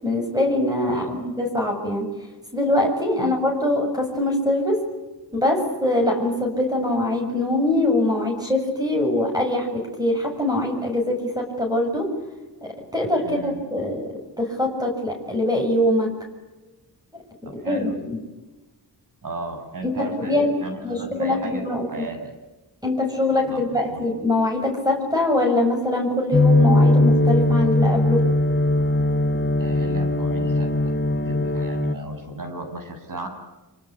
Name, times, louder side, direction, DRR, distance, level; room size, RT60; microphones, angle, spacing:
voice 1, 0.0-2.1 2.5-4.8 5.3-12.1 12.6-14.1 14.4-16.1 17.6-18.2 19.8-20.5 20.8-21.9 22.8-28.2, left 1 dB, 10° right, 1 dB, 7.0 m, -23 dB
voice 2, 0.9-1.2 3.2-3.3 13.2-13.6 17.4-17.9 19.2-21.6 21.9-22.3 23.5-23.6 23.9-24.0 29.6-30.7 31.2-33.3, right 2 dB, 55° right, 6 dB, 7.8 m, -34 dB
sound 1, 26.3-31.9, left 1 dB, 30° left, 1.3 m, -19 dB
26.5 x 25.0 x 8.6 m, 1.1 s
wide cardioid pair, 90°, 38 cm